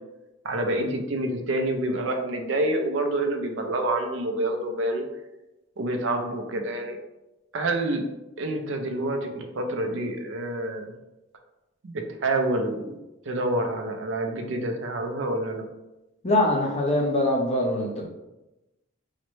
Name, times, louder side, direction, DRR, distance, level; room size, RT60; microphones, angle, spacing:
voice 1, 0.4-5.0 5.8-7.0 7.5-8.0 8.4-10.9 11.8-12.9 13.3-15.6, right 1 dB, 70° right, 4 dB, 0.5 m, -27 dB
voice 2, 16.2-18.1, left 1 dB, 30° left, -1 dB, 0.6 m, -23 dB
3.9 x 2.1 x 3.1 m, 0.99 s
head